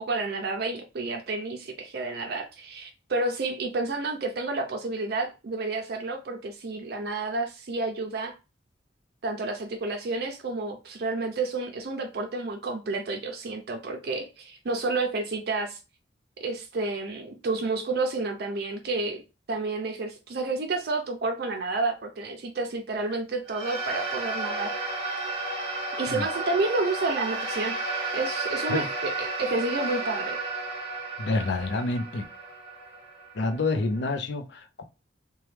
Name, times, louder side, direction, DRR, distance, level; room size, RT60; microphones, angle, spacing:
voice 1, 0.0-8.3 9.2-15.8 16.4-19.2 19.5-24.7 26.0-27.7 28.1-30.4, right 3 dB, 60° right, 0.5 m, -30 dB
sound 1, 23.5-34.0, right 2 dB, 35° right, 0.9 m, -32 dB
voice 2, 31.2-32.2 33.3-34.8, left 3 dB, 75° left, 0.5 m, -28 dB
3.0 x 2.2 x 3.2 m
head